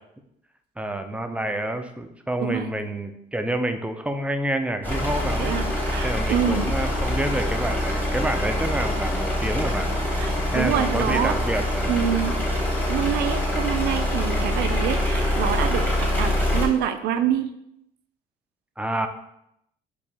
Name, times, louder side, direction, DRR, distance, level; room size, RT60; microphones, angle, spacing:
voice 1, 0.8-5.6 6.0-9.9 10.5-12.2 18.8-19.1, right 1 dB, 5° right, 6 dB, 0.4 m, -28 dB
sound 1, 4.8-16.7, left 1 dB, 10° left, 1.0 m, -25 dB
voice 2, 5.4-6.6 10.2-11.3 11.9-12.3 12.9-17.5, right 9 dB, 75° right, 9 dB, 0.5 m, -26 dB
4.6 x 2.6 x 4.2 m, 0.79 s
cardioid pair, 110°, 17 cm